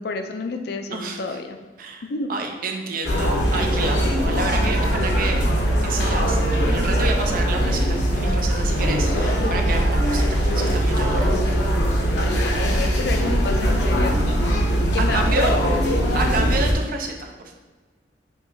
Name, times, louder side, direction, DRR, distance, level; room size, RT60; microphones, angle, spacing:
voice 1, 0.0-1.6 2.1-2.3 12.0-14.2 14.8-15.6, left 3 dB, 60° left, 6 dB, 0.4 m, -29 dB
voice 2, 0.9-1.4 1.8-5.5 5.8-11.6 15.0-15.6 16.1-17.5, right 3 dB, 55° right, 3 dB, 0.5 m, -29 dB
sound 1, 3.0-16.7, equal, 85° left, 0.8 m, -21 dB
6.1 x 2.8 x 2.7 m, 1.3 s
head